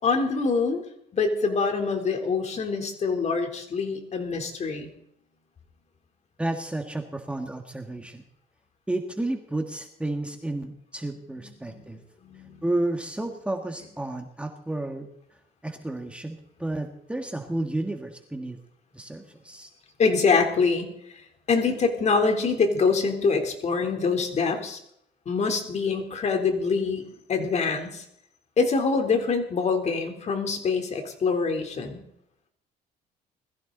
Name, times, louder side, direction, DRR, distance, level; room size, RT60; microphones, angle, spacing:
voice 1, 0.0-0.8 1.1-4.9 11.4-12.6 20.0-20.9 21.5-24.8 25.3-28.0 28.6-32.0, left 4 dB, 40° left, 4 dB, 3.6 m, -25 dB
voice 2, 6.4-8.2 8.9-12.0 12.6-15.1 15.6-18.6 18.9-19.7, right 2 dB, 5° right, 4 dB, 1.8 m, -31 dB
21.0 x 15.0 x 4.0 m, 0.74 s
cardioid pair, 110°, 17 cm